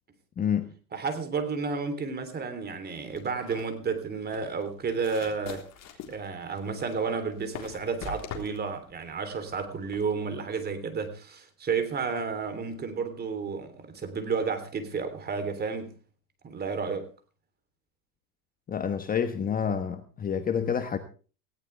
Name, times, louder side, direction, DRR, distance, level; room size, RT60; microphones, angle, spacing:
voice 1, 0.4-0.7 18.7-21.0, left 7 dB, 20° left, 1.2 m, -28 dB
voice 2, 0.9-5.6 6.1-15.9 16.4-17.1, right 5 dB, 20° right, 3.4 m, -31 dB
sound 1, 3.1-10.1, left 7 dB, 40° left, 3.7 m, -43 dB
18.5 x 16.5 x 3.4 m
supercardioid pair, 125°, 43 cm